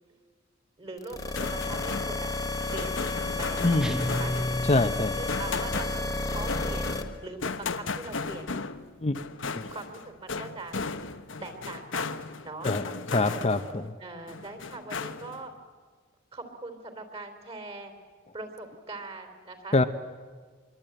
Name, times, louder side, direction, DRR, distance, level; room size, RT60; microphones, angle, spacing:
voice 1, 0.8-2.3 2.7-3.0 3.3-4.3 5.2-6.9 7.2-8.5 9.7-10.8 11.4-12.2 12.4-12.7 14.0-15.5 16.3-17.9 18.3-19.9, right 2 dB, 30° right, 7 dB, 3.5 m, -41 dB
sound 1, 1.0-7.0, left 2 dB, 20° left, 1.3 m, -32 dB
sound 2, 1.1-13.9 14.3-15.5, left 4 dB, 75° left, 1.0 m, -36 dB
voice 2, 3.6-3.9 4.6-5.2 9.0-9.1 9.6-9.7 12.6-12.8 13.1-13.9 19.7-19.8, left 2 dB, 35° left, 8 dB, 0.8 m, -24 dB
sound 3, 3.8-5.5, equal, 5° right, 0.8 m, -33 dB
26.0 x 23.0 x 9.1 m, 1.5 s
head